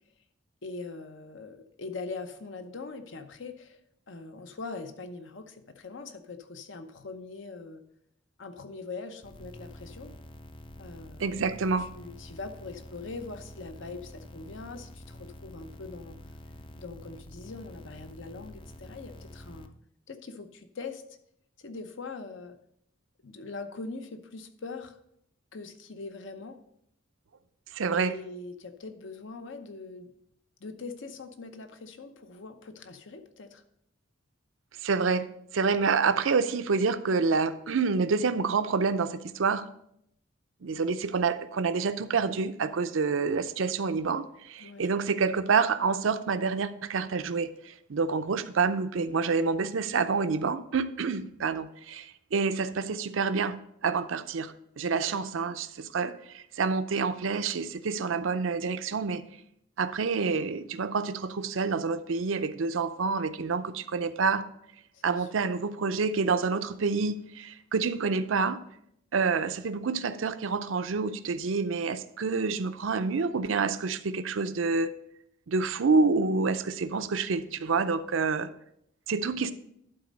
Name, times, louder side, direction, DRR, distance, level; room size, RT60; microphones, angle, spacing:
voice 1, 0.6-3.8 4.1-7.8 8.4-10.1 10.8-11.4 11.8-16.2 16.7-19.8 20.1-21.0 21.6-22.6 23.2-25.0 25.5-26.6 27.9-30.1 30.6-33.6 44.6-44.9 54.9-55.2 64.9-65.3 79.4-79.5, left 3 dB, 65° left, 0.8 m, -42 dB
sound 1, 9.2-19.7, left 1 dB, 25° left, 0.5 m, -47 dB
voice 2, 11.2-11.9 27.7-28.1 34.8-35.3 35.5-39.7 40.6-59.2 59.8-64.5 65.0-68.6 69.1-74.9 75.5-78.5 79.1-79.5, right 4 dB, 75° right, 0.5 m, -28 dB
11.5 x 4.1 x 5.2 m
head